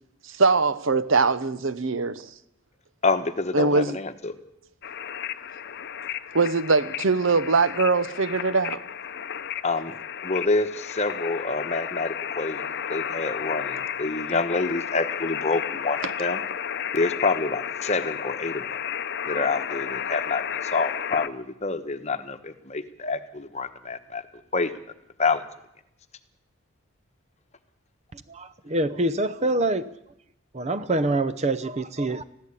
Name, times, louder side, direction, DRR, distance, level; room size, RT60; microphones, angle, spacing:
voice 1, 0.3-2.3 3.5-4.0 6.3-8.8 16.0-16.1, right 4 dB, 60° right, 14 dB, 0.9 m, -22 dB
voice 2, 3.0-4.3 9.6-9.9 10.2-16.4 16.9-18.6 19.3-20.4 20.7-24.2 24.5-24.7 25.2-25.4, left 3 dB, 30° left, 10 dB, 1.1 m, -27 dB
sound 1, 4.8-21.3, left 8 dB, 50° left, 0.7 m, -33 dB
voice 3, 28.1-29.9 30.5-32.2, right 2 dB, 30° right, 13 dB, 0.7 m, -25 dB
20.5 x 15.0 x 8.4 m, 0.82 s
head